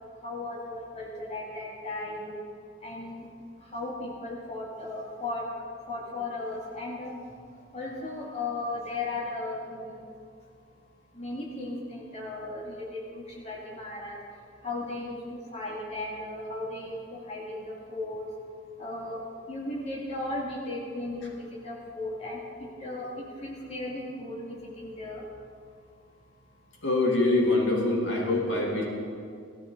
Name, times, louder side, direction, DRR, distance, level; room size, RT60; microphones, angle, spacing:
voice 1, 0.2-2.3 2.8-3.2 3.7-5.4 5.9-7.1 7.7-10.0 11.2-14.2 14.6-15.2 15.5-17.0 17.3-18.2 18.8-19.2 19.5-22.4 22.8-23.1 23.4-25.2, left 2 dB, 35° left, -4 dB, 2.4 m, -36 dB
voice 2, 26.8-28.8, left 2 dB, 85° left, -2 dB, 2.6 m, -24 dB
17.5 x 13.0 x 3.9 m, 2.3 s
head